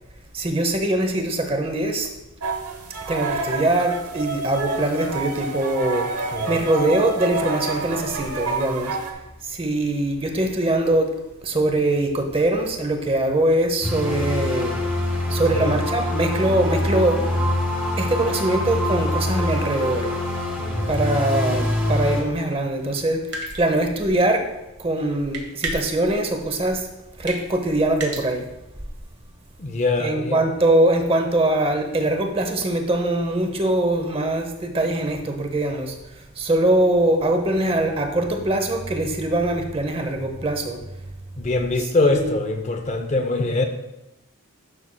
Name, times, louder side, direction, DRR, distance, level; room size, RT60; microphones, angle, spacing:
voice 1, 0.3-2.1 3.1-6.1 6.5-9.0 9.4-11.1 11.4-14.8 15.3-17.2 18.0-20.1 20.9-23.3 23.6-24.5 24.8-26.9 27.2-28.4 30.0-36.0 36.4-40.8 42.0-42.3, right 1 dB, 25° right, 5 dB, 0.7 m, -22 dB
sound 1, 2.4-9.1, right 3 dB, 85° right, 0.9 m, -28 dB
voice 2, 6.3-6.6 15.5-15.8 20.6-20.9 29.6-30.4 41.4-43.6, left 2 dB, 30° left, 5 dB, 0.6 m, -23 dB
sound 2, 13.8-22.2, left 1 dB, 10° right, 1.4 m, -24 dB
sound 3, 23.3-23.9 25.3-26.1 27.3-27.5 28.0-28.2, right 3 dB, 50° right, 1.4 m, -31 dB
11.0 x 6.3 x 2.2 m, 0.96 s
head